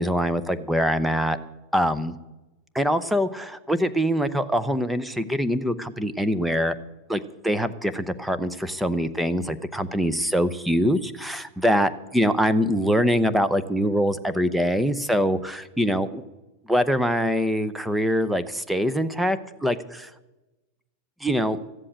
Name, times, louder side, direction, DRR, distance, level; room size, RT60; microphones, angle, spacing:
voice 1, 0.0-1.4 1.7-2.1 2.7-6.7 7.1-16.2 16.7-20.1 21.2-21.6, equal, 5° right, 12 dB, 0.7 m, -24 dB
14.0 x 7.7 x 8.7 m, 1.1 s
supercardioid pair, 135°, 0 cm